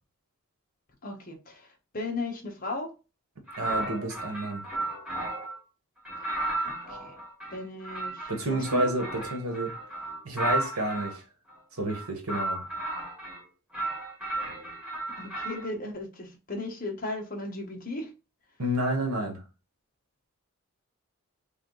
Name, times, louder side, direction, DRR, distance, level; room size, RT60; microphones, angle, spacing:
voice 1, 1.0-2.9 6.6-7.1 7.5-8.9 15.2-18.1, left 2 dB, 40° left, 1.2 m, -36 dB
sound 1, 3.5-5.6 6.1-11.2 11.8-13.4 13.7-15.7, right 2 dB, 5° right, 1.5 m, -34 dB
voice 2, 3.6-4.7 8.3-9.7 10.2-11.2 11.7-12.6 18.6-19.4, right 1 dB, 80° right, 1.4 m, -30 dB
3.6 x 3.5 x 3.9 m
head